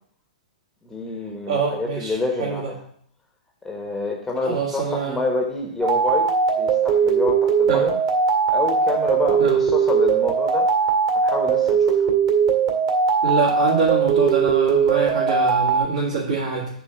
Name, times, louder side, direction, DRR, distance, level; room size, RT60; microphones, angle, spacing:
voice 1, 0.8-2.8 3.6-8.0 8.5-10.7 11.1-12.1, left 3 dB, 5° left, 0 dB, 1.1 m, -27 dB
voice 2, 1.5-2.1 2.4-2.7 4.4-5.2 7.7-7.8 9.4-9.6 13.2-16.7, right 5 dB, 55° right, -5 dB, 2.3 m, -24 dB
sound 1, 5.8-15.8, right 6 dB, 35° right, 2.1 m, -19 dB
8.5 x 4.2 x 7.1 m, 0.62 s
figure-of-eight pair, 110°, 4 cm